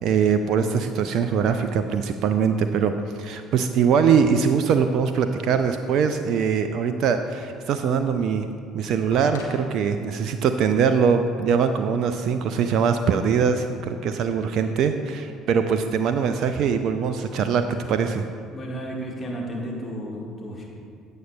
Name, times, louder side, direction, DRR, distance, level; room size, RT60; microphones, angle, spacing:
voice 1, 0.0-8.5 8.7-18.2, right 6 dB, 50° right, 8 dB, 0.4 m, -22 dB
sound 1, 9.1-12.0 13.2-13.3, left 3 dB, 75° left, 1.1 m, -46 dB
voice 2, 18.5-20.7, equal, 25° left, -1 dB, 1.7 m, -33 dB
15.5 x 8.9 x 2.3 m, 2.3 s
figure-of-eight pair, 55°, 0 cm